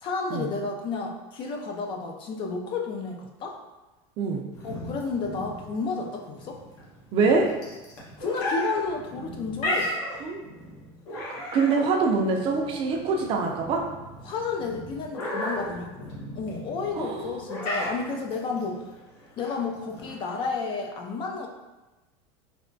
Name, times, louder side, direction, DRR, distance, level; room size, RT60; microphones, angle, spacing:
voice 1, 0.0-3.5 4.6-6.6 8.2-9.9 14.2-18.8 19.4-21.5, left 4 dB, 35° left, 2 dB, 0.4 m, -31 dB
sound 1, 4.5-20.5, left 1 dB, 65° left, 1.1 m, -35 dB
voice 2, 7.1-7.5 10.2-10.4 11.5-13.8 16.9-17.4, right 4 dB, 40° right, 1 dB, 0.5 m, -24 dB
3.3 x 2.8 x 2.6 m, 1.1 s
supercardioid pair, 150°, 15 cm